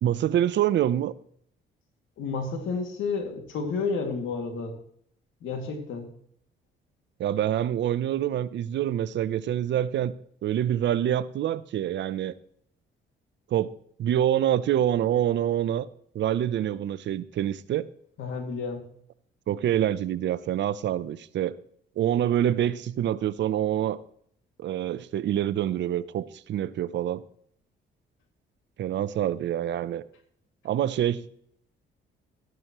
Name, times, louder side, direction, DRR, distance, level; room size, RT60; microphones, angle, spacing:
voice 1, 0.0-1.1 7.2-10.1 10.4-12.3 13.5-13.7 14.0-15.9 16.1-17.9 19.5-21.5 22.0-24.0 24.6-27.2 28.8-30.0 30.6-31.3, right 11 dB, 65° right, 17 dB, 0.6 m, -26 dB
voice 2, 2.2-4.7 5.4-6.1 18.2-18.8, left 4 dB, 80° left, 4 dB, 2.4 m, -31 dB
14.0 x 11.0 x 3.0 m, 0.66 s
cardioid pair, 90°, 20 cm